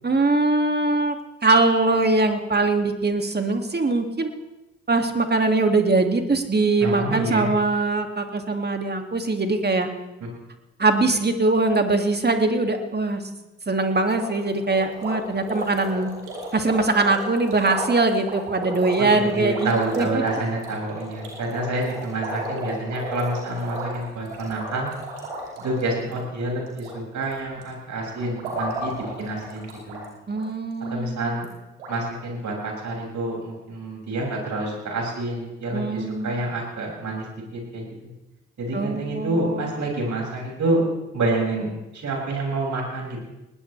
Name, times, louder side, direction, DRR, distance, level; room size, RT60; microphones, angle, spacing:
voice 1, 0.0-1.1 1.4-4.3 4.9-9.9 10.8-13.2 13.7-16.1 16.5-19.7 20.0-20.2 30.3-31.4 35.7-36.3 38.7-39.7, right 3 dB, 30° right, 5 dB, 2.5 m, -22 dB
voice 2, 6.8-7.5 19.0-24.9 25.6-30.0 30.9-31.5 31.9-37.2 37.5-37.8 38.6-40.8 41.1-43.2, right 2 dB, 55° right, -2 dB, 6.8 m, -28 dB
sound 1, 14.2-26.9 27.2-27.6 28.1-30.0 30.3-30.4 30.8-30.9 31.4-31.5 31.8-32.0, right 1 dB, 90° right, 3.1 m, -34 dB
20.0 x 17.5 x 3.4 m, 1.0 s
hypercardioid pair, 40°, 34 cm